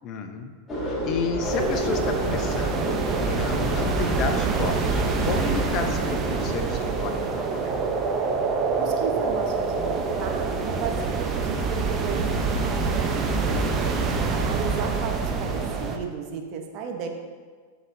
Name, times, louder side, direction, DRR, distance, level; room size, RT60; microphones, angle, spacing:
voice 1, 0.0-0.5 1.1-2.9 3.2-7.7, left 5 dB, 45° left, 6 dB, 0.7 m, -31 dB
sound 1, 0.7-6.5, left 1 dB, 15° left, 1.9 m, -32 dB
sound 2, 1.4-16.0, right 4 dB, 25° right, 0.8 m, -26 dB
voice 2, 8.8-13.7 14.3-17.1, right 6 dB, 50° right, 3 dB, 1.0 m, -34 dB
11.0 x 4.1 x 2.7 m, 1.5 s
hypercardioid pair, 105°, 0 cm